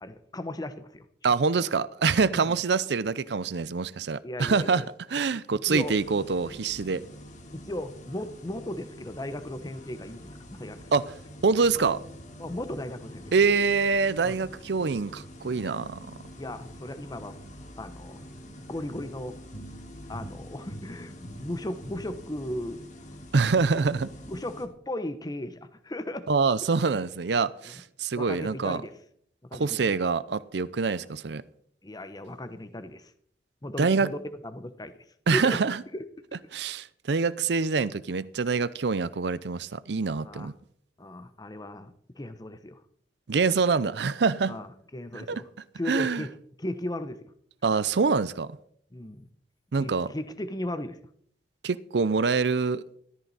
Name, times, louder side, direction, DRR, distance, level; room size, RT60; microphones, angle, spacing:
voice 1, 0.0-1.3 2.3-2.6 4.2-4.9 5.7-6.0 7.5-10.8 12.4-13.2 14.2-14.4 16.4-17.4 17.8-18.2 18.7-19.4 20.1-22.9 23.5-23.8 24.3-26.3 28.2-28.9 29.5-29.9 31.8-33.1 33.6-34.2 34.4-34.9 35.3-35.6 35.9-36.1 40.2-40.5 41.0-42.8 44.4-45.5 45.8-47.3 48.9-49.3 49.7-51.0, left 1 dB, 25° left, 0.8 m, -36 dB
voice 2, 1.2-4.8 5.1-7.0 10.9-11.0 11.4-12.0 13.3-16.0 23.3-24.1 26.3-28.8 29.5-31.4 33.8-34.1 35.3-35.8 36.5-40.5 43.3-44.6 45.1-45.4 45.9-46.2 47.6-48.5 49.7-50.1 51.6-52.8, right 4 dB, 70° right, 0.6 m, -25 dB
sound 1, 5.6-24.7, equal, 45° left, 1.9 m, -45 dB
13.5 x 13.5 x 4.1 m
head